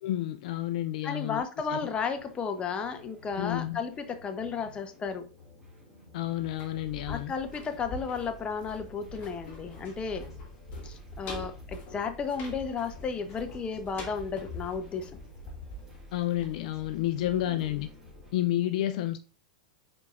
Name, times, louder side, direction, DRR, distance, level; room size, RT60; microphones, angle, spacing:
voice 1, 0.0-1.4 1.7-1.9 3.4-3.8 6.1-7.3 16.1-17.9 18.3-19.2, left 13 dB, 65° left, 0.3 m, -30 dB
voice 2, 1.0-5.3 7.1-10.3 10.8-15.1 17.2-17.6, left 5 dB, 25° left, 0.7 m, -33 dB
sound 1, 1.6-18.3, left 1 dB, 10° right, 2.1 m, -51 dB
sound 2, 6.4-17.2 17.5-17.6, left 2 dB, 40° left, 1.3 m, -44 dB
4.5 x 4.1 x 2.4 m
hypercardioid pair, 105°, 4 cm